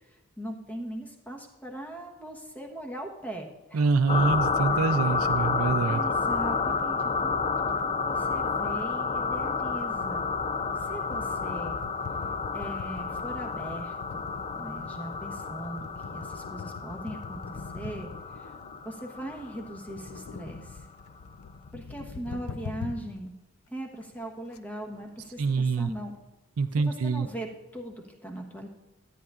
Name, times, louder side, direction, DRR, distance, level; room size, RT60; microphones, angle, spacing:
voice 1, 0.0-3.9 5.9-10.3 10.8-11.8 12.5-14.3 14.5-18.5 18.8-20.9 21.7-23.3 23.7-26.1 26.7-27.5 27.7-28.7, right 1 dB, 5° left, 1 dB, 1.1 m, -40 dB
voice 2, 3.7-6.0 25.4-25.9 26.6-27.3, right 4 dB, 70° right, 8 dB, 0.5 m, -25 dB
sound 1, 4.1-20.3, left 4 dB, 30° left, 0.5 m, -30 dB
sound 2, 10.0-23.2 23.7-23.8 24.0-24.2 24.5-24.6 24.8-26.2, left 5 dB, 80° left, 0.5 m, -43 dB
13.0 x 9.5 x 2.4 m, 1.1 s
head